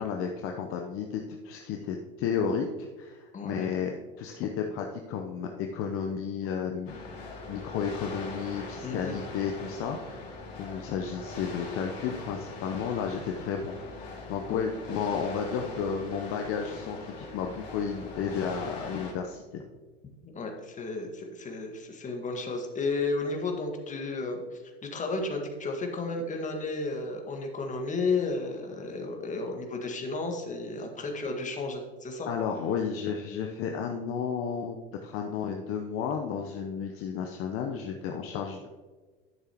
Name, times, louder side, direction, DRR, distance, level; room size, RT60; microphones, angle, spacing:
voice 1, 0.0-7.0 7.5-10.3 10.6-19.4 32.3-34.8 35.0-38.7, left 6 dB, 45° left, 3 dB, 0.9 m, -32 dB
voice 2, 3.3-3.7 8.8-9.2 14.5-14.7 20.2-32.3, left 3 dB, 25° left, 3 dB, 1.7 m, -33 dB
sound 1, 6.9-19.1, left 3 dB, 70° left, 2.8 m, -42 dB
12.0 x 6.8 x 3.0 m, 1.4 s
hypercardioid pair, 85°, 31 cm